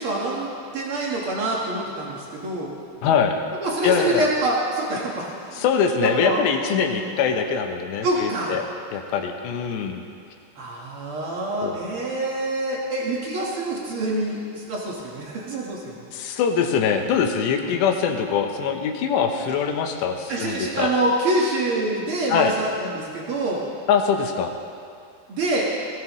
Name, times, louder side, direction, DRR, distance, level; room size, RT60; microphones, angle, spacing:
voice 1, 0.0-2.7 3.6-5.6 6.0-6.4 6.7-7.1 8.0-8.6 10.5-16.0 17.6-17.8 20.3-23.7 25.3-25.7, right 2 dB, 85° right, -4 dB, 1.2 m, -26 dB
voice 2, 3.0-3.4 3.8-4.3 5.6-8.6 8.9-10.0 11.6-11.8 16.1-20.9 22.3-22.6 23.9-24.5, left 7 dB, 80° left, 4 dB, 3.1 m, -23 dB
20.5 x 16.5 x 3.1 m, 2.4 s
omnidirectional pair, 5.0 m